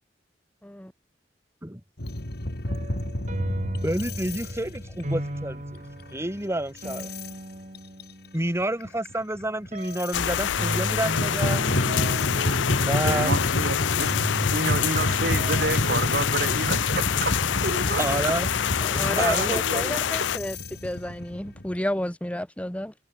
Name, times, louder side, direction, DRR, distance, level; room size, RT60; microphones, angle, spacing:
sound 1, 2.0-6.3 6.7-7.3 7.7-8.1 8.6-10.5 11.0-21.8, left 1 dB, 60° left, 3.0 m, -30 dB
sound 2, 2.7-8.6 9.7-10.0 10.6-13.6 14.1-16.4, right 1 dB, 40° right, 3.0 m, -35 dB
voice 1, 3.8-5.8 6.1-7.1 8.3-11.6 12.8-13.3 14.8-14.9 18.0-18.5 18.8-19.6, right 1 dB, 15° right, 3.3 m, -29 dB
sound 3, 10.1-20.4, left 10 dB, 90° left, 0.4 m, -26 dB
voice 2, 13.1-14.1 14.5-18.3 19.1-20.0, right 3 dB, 60° right, 2.4 m, -30 dB
voice 3, 19.0-20.6 20.8-22.9, left 1 dB, 5° left, 1.1 m, -31 dB
open air
head